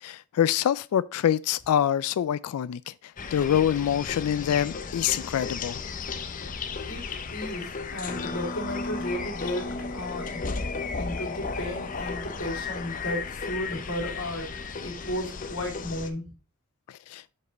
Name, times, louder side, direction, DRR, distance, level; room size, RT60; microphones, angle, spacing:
voice 1, 0.0-5.8 16.9-17.2, left 10 dB, 85° left, 0.3 m, -26 dB
sound 1, 3.2-16.1, left 4 dB, 35° left, 0.6 m, -34 dB
voice 2, 6.9-10.4 11.0-16.2, left 1 dB, 65° left, 2.6 m, -34 dB
6.5 x 5.4 x 4.0 m
head